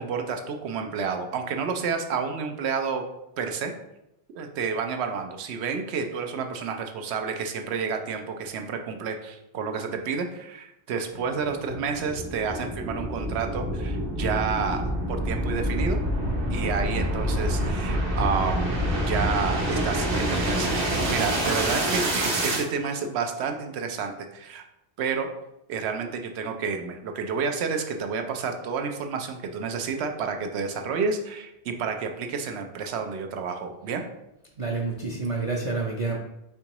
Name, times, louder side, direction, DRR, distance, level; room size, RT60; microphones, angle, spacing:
voice 1, 0.0-3.0 3.4-3.7 4.3-16.0 16.5-18.7 19.1-20.7 21.1-24.6 25.0-25.3 25.7-34.0, right 5 dB, 85° right, 5 dB, 0.9 m, -30 dB
sound 1, 11.1-22.6, right 1 dB, 60° right, 1.0 m, -27 dB
voice 2, 34.6-36.2, right 3 dB, 45° right, -2 dB, 0.5 m, -28 dB
4.4 x 3.6 x 3.0 m, 0.86 s
omnidirectional pair, 1.1 m